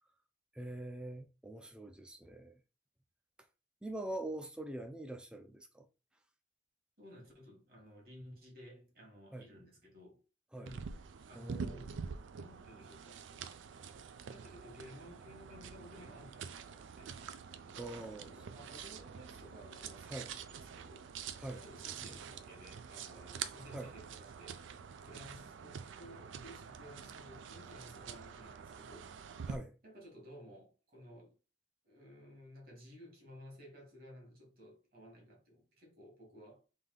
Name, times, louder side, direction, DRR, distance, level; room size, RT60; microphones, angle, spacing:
voice 1, 0.5-2.6 3.8-5.9 9.3-9.5 10.5-10.7 11.3-11.9 17.8-18.3 20.1-20.3 21.4-21.6 22.0-22.1 23.7-23.9 29.5-29.8, right 1 dB, 5° right, 0.4 m, -44 dB
voice 2, 7.0-10.2 10.5-10.9 11.3-12.0 12.4-13.2 14.3-17.1 17.6-21.1 21.5-24.6 25.0-29.1 29.8-31.3 31.8-36.6, equal, 50° right, 1.5 m, -55 dB
sound 1, 10.7-29.6, right 6 dB, 90° right, 0.4 m, -47 dB
3.5 x 2.7 x 3.8 m
head